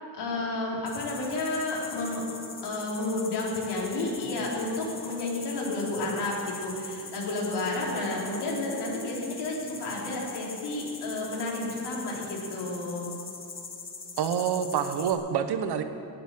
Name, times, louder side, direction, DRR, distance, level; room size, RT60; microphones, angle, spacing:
voice 1, 0.1-2.2 2.6-13.1, left 2 dB, 80° left, -3 dB, 3.9 m, -31 dB
sound 1, 0.9-15.1, left 4 dB, 30° left, 1.6 m, -43 dB
voice 2, 14.2-15.8, right 8 dB, 75° right, 9 dB, 1.1 m, -27 dB
18.5 x 8.2 x 7.6 m, 2.7 s
cardioid pair, 145°, 40 cm